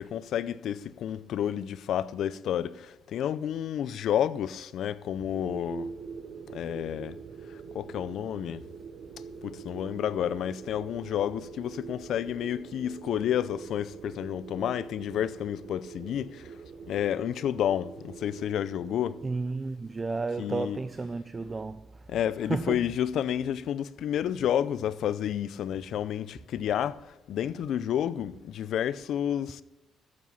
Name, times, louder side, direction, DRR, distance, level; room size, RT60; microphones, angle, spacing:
voice 1, 0.0-5.9 6.5-7.2 7.5-8.6 9.4-16.5 16.9-19.2 20.4-20.8 22.1-29.6, left 10 dB, 75° left, 0.5 m, -30 dB
sound 1, 5.3-19.3, right 5 dB, 65° right, 0.7 m, -44 dB
voice 2, 19.2-22.1 22.4-22.8, right 3 dB, 25° right, 0.5 m, -32 dB
14.0 x 7.5 x 5.5 m
cardioid pair, 90°, 0 cm